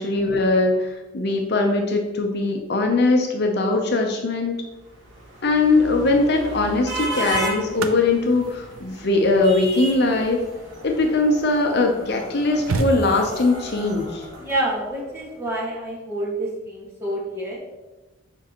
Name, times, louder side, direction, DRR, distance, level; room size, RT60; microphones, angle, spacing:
voice 1, 0.0-4.6 5.4-10.4 10.8-14.2, left 2 dB, 50° left, 2 dB, 0.6 m, -21 dB
sound 1, 4.8-15.1, right 1 dB, 60° right, 1.5 m, -34 dB
sound 2, 5.7-6.0 6.9-11.5 12.0-12.1 12.3-13.6 15.3-15.5, right 2 dB, 80° right, 0.6 m, -32 dB
voice 2, 14.4-17.6, right 1 dB, 10° right, -6 dB, 1.6 m, -28 dB
7.2 x 5.2 x 3.0 m, 1.1 s
head